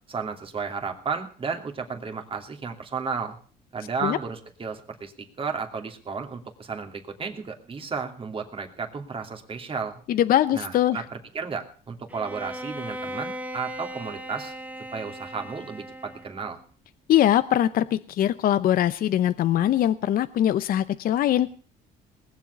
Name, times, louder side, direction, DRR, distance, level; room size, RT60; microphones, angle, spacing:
voice 1, 0.1-3.4 3.7-10.0 10.5-14.5 14.9-16.6, right 5 dB, 30° right, 4 dB, 2.7 m, -33 dB
voice 2, 10.1-11.0 17.1-21.6, left 11 dB, 60° left, 14 dB, 0.7 m, -22 dB
Bowed string instrument, 12.1-16.5, right 1 dB, 10° right, 1.3 m, -38 dB
20.0 x 7.6 x 8.2 m, 0.43 s
cardioid pair, 110°, 17 cm